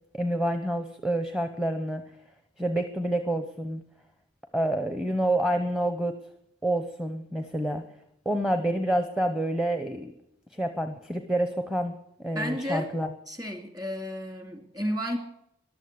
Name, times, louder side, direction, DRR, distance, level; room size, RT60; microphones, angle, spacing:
voice 1, 0.1-2.0 2.6-3.8 4.5-6.2 6.6-7.8 8.2-10.1 10.5-11.9 12.2-13.1, right 1 dB, 5° right, 7 dB, 0.8 m, -28 dB
voice 2, 12.3-12.9 13.3-15.2, equal, 20° right, 5 dB, 2.4 m, -32 dB
14.5 x 12.0 x 8.1 m, 0.77 s
head